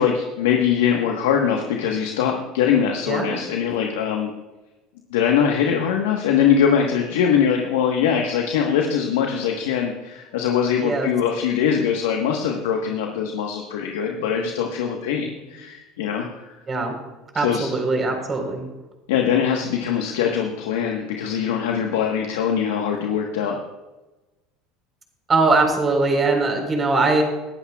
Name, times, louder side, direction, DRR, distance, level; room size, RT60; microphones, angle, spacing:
voice 1, 0.0-4.3 5.1-16.5 17.3-17.7 19.1-23.6, left 8 dB, 85° left, 2 dB, 1.3 m, -22 dB
voice 2, 3.1-3.4 10.8-11.1 16.7-16.9 17.3-18.7 25.3-27.2, right 3 dB, 30° right, 2 dB, 4.1 m, -21 dB
20.0 x 12.0 x 2.4 m, 1.1 s
supercardioid pair, 90°, 0 cm